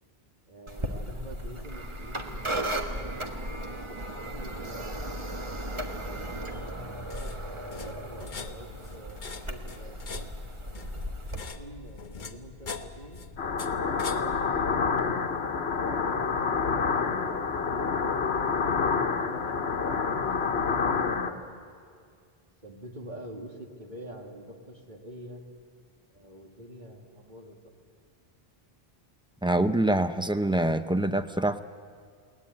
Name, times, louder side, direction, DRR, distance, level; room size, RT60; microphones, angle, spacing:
voice 1, 0.5-3.2 3.9-4.0 4.3-6.0 7.7-10.3 11.3-13.2 13.9-15.2 15.8-18.0 18.3-20.7 21.1-22.3 22.6-25.4 26.1-27.7, right 1 dB, 45° right, 1 dB, 2.6 m, -47 dB
sound 1, 0.7-11.4, right 1 dB, 30° right, 1.5 m, -36 dB
sound 2, 5.8-15.1, left 4 dB, 50° left, 1.1 m, -43 dB
sound 3, 13.4-21.3, left 5 dB, 85° left, 1.4 m, -28 dB
voice 2, 29.4-31.6, right 1 dB, 5° right, 9 dB, 0.5 m, -25 dB
21.0 x 18.5 x 9.7 m, 2.2 s
omnidirectional pair, 1.0 m